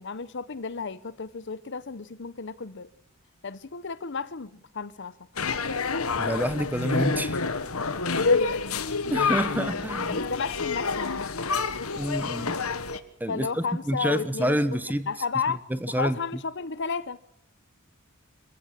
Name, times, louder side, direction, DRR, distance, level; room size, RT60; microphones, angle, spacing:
voice 1, 0.0-2.9 3.4-5.7 8.1-8.9 10.1-11.6 13.3-14.6 15.1-17.2, left 5 dB, 55° left, 0.8 m, -33 dB
sound 1, 5.4-13.0, left 4 dB, 75° left, 1.5 m, -28 dB
voice 2, 6.2-7.4 9.1-10.2 12.0-12.6 13.2-13.5 13.9-15.1 15.7-16.2, right 1 dB, 10° right, 1.1 m, -27 dB
26.5 x 15.0 x 7.5 m
head